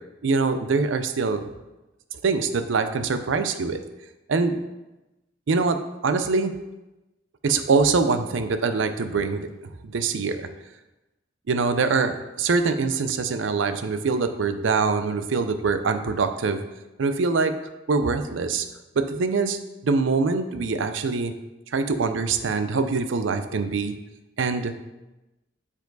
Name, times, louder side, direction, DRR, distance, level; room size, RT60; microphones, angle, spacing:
voice 1, 0.2-1.5 2.2-3.8 4.3-4.6 5.5-5.8 6.0-6.5 7.4-9.4 9.8-10.5 11.5-16.6 17.0-17.5 17.9-18.7 19.0-21.3 21.7-24.0 24.4-24.7, right 4 dB, 75° right, 9 dB, 0.5 m, -24 dB
7.0 x 4.7 x 3.9 m, 1.0 s
head